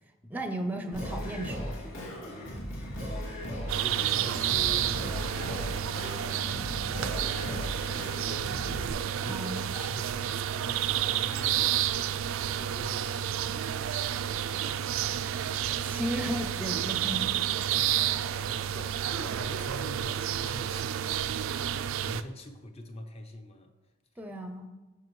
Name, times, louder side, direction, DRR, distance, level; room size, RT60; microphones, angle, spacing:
voice 1, 0.3-1.8 9.3-9.6 14.5-14.9 15.8-17.3 24.2-24.7, right 1 dB, 10° right, 0.5 m, -35 dB
Singing, 0.9-8.9, equal, 75° left, 2.4 m, -37 dB
voice 2, 3.3-7.2 7.5-11.9 12.4-13.8 15.2-15.4 17.7-21.4 22.0-23.7, left 1 dB, 30° left, 0.7 m, -45 dB
sound 1, 3.7-22.2, right 10 dB, 75° right, 0.3 m, -30 dB
14.0 x 5.1 x 3.1 m
head